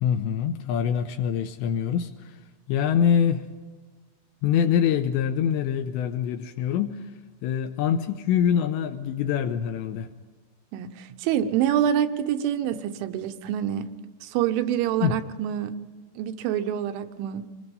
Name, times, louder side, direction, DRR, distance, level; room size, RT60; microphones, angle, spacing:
voice 1, 0.0-2.4 2.7-3.5 4.4-7.0 7.4-10.1 15.0-15.2, left 8 dB, 80° left, 7 dB, 2.8 m, -24 dB
voice 2, 10.7-13.9 14.2-15.7 16.2-17.4, right 10 dB, 85° right, 9 dB, 3.4 m, -26 dB
24.5 x 20.5 x 5.4 m, 1.4 s
omnidirectional pair, 5.4 m